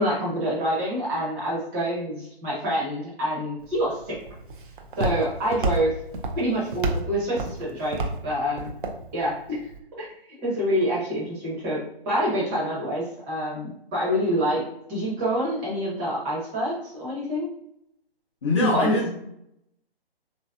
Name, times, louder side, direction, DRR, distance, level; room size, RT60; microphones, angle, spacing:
voice 1, 0.0-4.2 5.0-5.9 6.4-8.7 9.1-9.6 10.0-10.1 10.4-14.6 14.9-17.5 18.6-18.9, equal, 15° right, -5 dB, 0.8 m, -26 dB
Walk footsteps, 3.6-9.8, right 2 dB, 55° right, 0.6 m, -31 dB
voice 2, 18.4-19.1, left 3 dB, 30° left, -4 dB, 0.6 m, -23 dB
3.3 x 2.7 x 2.2 m, 0.77 s
figure-of-eight pair, 140°, 31 cm